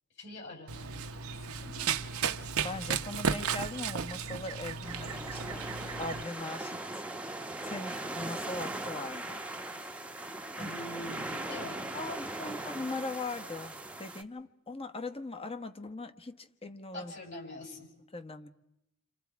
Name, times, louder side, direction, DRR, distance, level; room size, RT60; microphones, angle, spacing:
voice 1, 0.2-2.0 10.6-11.9 12.4-12.7 16.9-17.9, left 1 dB, 55° left, 1 dB, 7.3 m, -45 dB
Run, 0.7-6.2, right 6 dB, 70° right, 1.0 m, -34 dB
voice 2, 2.6-5.6 6.0-7.0 7.6-9.4 10.6-10.7 11.9-13.7 14.0-17.1 18.1-18.5, left 2 dB, 25° left, 8 dB, 1.3 m, -40 dB
sound 1, 4.8-14.2, right 2 dB, 5° right, 1.0 m, -39 dB
30.0 x 27.0 x 4.7 m, 0.83 s
head